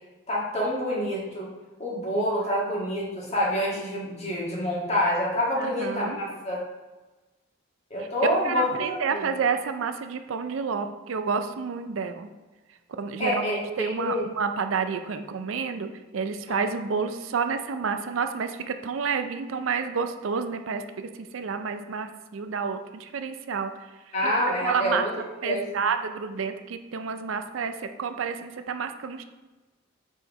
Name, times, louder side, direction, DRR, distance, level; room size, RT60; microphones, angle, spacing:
voice 1, 0.3-1.5 1.8-6.6 7.9-9.3 13.2-14.3 16.5-16.6 24.1-25.1 25.4-25.8, left 1 dB, 30° left, -5 dB, 1.7 m, -27 dB
voice 2, 5.6-6.2 8.0-8.1 8.4-12.3 12.9-25.1 25.4-29.2, right 5 dB, 75° right, 8 dB, 0.4 m, -30 dB
5.4 x 4.5 x 4.2 m, 1.2 s
head